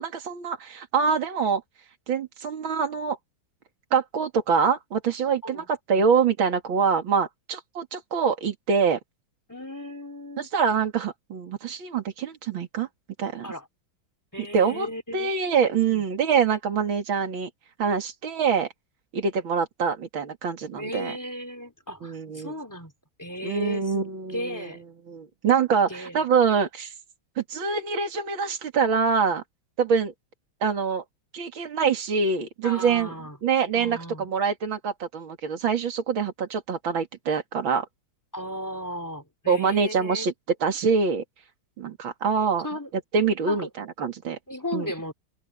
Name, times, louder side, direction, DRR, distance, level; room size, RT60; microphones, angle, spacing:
voice 1, 0.0-1.6 2.1-3.2 3.9-9.0 10.4-12.9 13.2-13.5 14.4-14.9 15.1-17.5 17.8-18.7 19.1-21.1 22.0-22.5 23.4-24.7 25.1-26.9 27.4-29.4 29.8-30.1 30.6-31.0 31.3-33.1 33.4-37.9 39.5-40.3 40.6-41.2 41.8-42.7 43.1-44.4 44.7-44.9, right 6 dB, 70° right, 3.1 m, -25 dB
voice 2, 9.5-10.5 13.4-13.7 14.3-15.3 15.8-16.0 20.8-22.9 23.2-24.0 24.3-24.8 25.9-26.2 32.6-33.4 33.7-34.3 38.3-40.3 42.6-42.9 43.4-43.7 44.5-45.1, equal, 10° left, 2.8 m, -35 dB
omnidirectional pair, 2.2 m